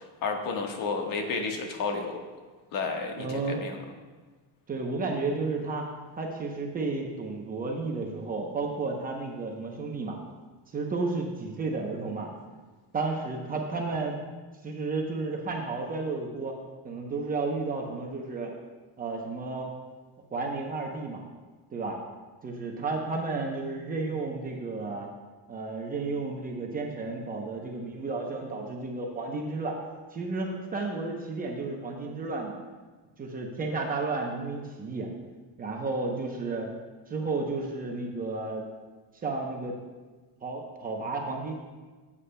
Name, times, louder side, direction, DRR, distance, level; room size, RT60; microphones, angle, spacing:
voice 1, 0.2-2.2 2.7-3.8, left 4 dB, 50° left, 3 dB, 1.4 m, -31 dB
voice 2, 3.2-3.7 4.7-5.9 6.2-10.2 10.7-12.3 12.9-14.2 14.6-16.6 16.8-18.5 19.0-19.7 20.3-21.2 21.7-22.0 22.4-25.1 25.5-29.8 30.1-32.6 33.2-35.1 35.6-36.7 37.1-38.7 39.2-39.7 40.4-41.5, right 3 dB, 20° right, 0 dB, 0.8 m, -32 dB
16.0 x 8.4 x 2.3 m, 1.4 s
cardioid pair, 160°, 41 cm